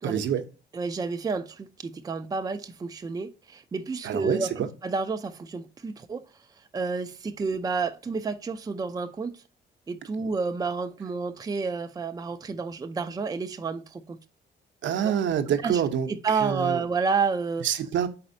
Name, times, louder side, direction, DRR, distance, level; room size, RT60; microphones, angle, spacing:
voice 1, 0.0-0.4 4.0-4.7 14.8-16.1 16.4-16.8 17.6-18.1, right 9 dB, 70° right, 0.7 m, -26 dB
voice 2, 0.7-6.2 6.7-9.4 9.9-14.2 15.0-15.1 15.6-15.8 16.2-17.7, right 4 dB, 20° right, 0.4 m, -30 dB
4.2 x 4.1 x 2.6 m
cardioid pair, 90°, 20 cm